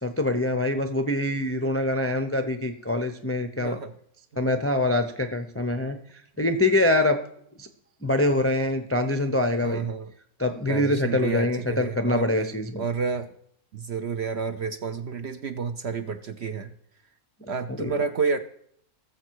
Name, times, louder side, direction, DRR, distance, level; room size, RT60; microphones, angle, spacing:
voice 1, 0.0-3.8 4.4-6.0 6.4-7.2 7.6-7.7 8.0-9.9 10.4-12.8 17.4-17.5 17.8-17.9, left 1 dB, 20° left, 6 dB, 0.3 m, -24 dB
voice 2, 3.6-3.9 9.6-10.1 10.7-12.3 12.8-13.3 13.7-16.7 17.5-18.4, right 5 dB, 55° right, 9 dB, 0.8 m, -30 dB
18.5 x 7.4 x 4.7 m, 0.68 s
omnidirectional pair, 1.7 m